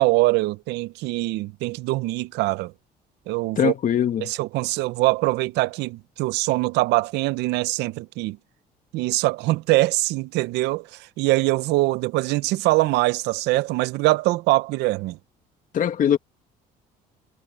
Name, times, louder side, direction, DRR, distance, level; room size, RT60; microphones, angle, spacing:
voice 1, 0.0-2.7 3.3-3.7 4.2-8.4 8.9-10.9 11.2-15.2, right 20 dB, 85° right, 0.6 m, -23 dB
voice 2, 3.6-4.3 15.7-16.2, left 9 dB, 50° left, 2.0 m, -21 dB
cardioid pair, 110°, 17 cm